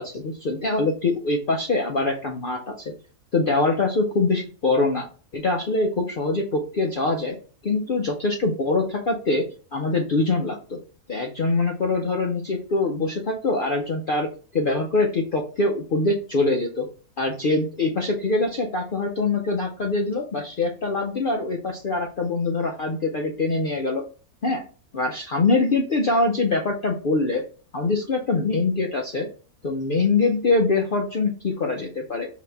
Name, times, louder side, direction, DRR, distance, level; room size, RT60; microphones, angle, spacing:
voice 1, 0.0-2.9 3.3-5.1 5.3-7.4 7.6-9.4 9.7-10.8 11.1-14.3 14.5-16.9 17.2-24.0 24.4-24.6 24.9-27.4 27.7-29.3 29.6-32.3, left 3 dB, 70° left, 1 dB, 0.5 m, -23 dB
5.1 x 2.8 x 3.3 m, 0.39 s
omnidirectional pair, 1.6 m